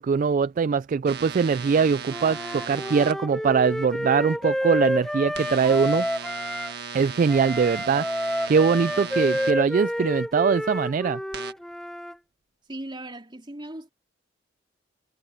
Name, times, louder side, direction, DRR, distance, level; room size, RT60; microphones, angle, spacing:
voice 1, 0.0-6.1 6.9-8.1 8.5-11.2, right 5 dB, 45° right, 0.3 m, -22 dB
sound 1, 1.1-3.1 5.3-9.5 11.3-11.5, right 6 dB, 60° right, 1.6 m, -37 dB
Wind instrument woodwind instrument, 2.1-6.7 7.3-12.1, equal, ahead, 0.7 m, -29 dB
voice 2, 12.7-13.9, right 1 dB, 25° right, 3.4 m, -37 dB
head